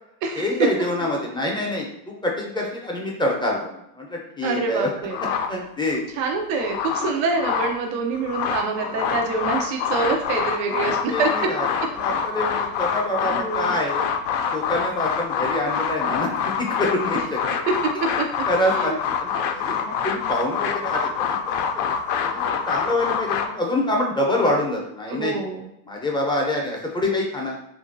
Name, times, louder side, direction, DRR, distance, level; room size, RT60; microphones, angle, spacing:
voice 1, 0.4-4.9 5.5-6.0 11.1-11.7 11.9-14.1 14.5-17.4 18.5-18.9 19.2-21.8 22.2-25.3 25.8-27.6, left 1 dB, 10° left, -1 dB, 0.6 m, -26 dB
voice 2, 4.4-5.2 6.2-11.5 13.3-13.7 17.7-17.8 18.0-18.3 18.8-19.0 25.1-25.7, right 4 dB, 75° right, 2 dB, 0.7 m, -25 dB
sound 1, 5.1-6.0 6.4-7.8 8.1-23.5, left 7 dB, 55° left, 0.5 m, -26 dB
2.8 x 2.6 x 2.6 m, 0.80 s
supercardioid pair, 105°, 49 cm